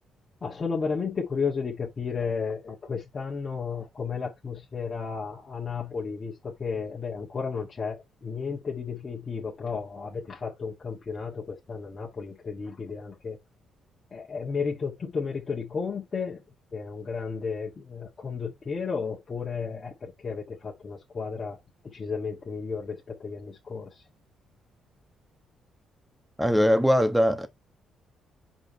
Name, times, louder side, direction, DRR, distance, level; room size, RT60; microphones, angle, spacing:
voice 1, 0.4-13.4 14.1-16.4 16.7-21.6 21.8-24.0, left 5 dB, 40° left, 1.7 m, -33 dB
voice 2, 26.4-27.5, equal, 5° right, 1.2 m, -21 dB
5.1 x 4.5 x 4.3 m
cardioid pair, 90°, 0 cm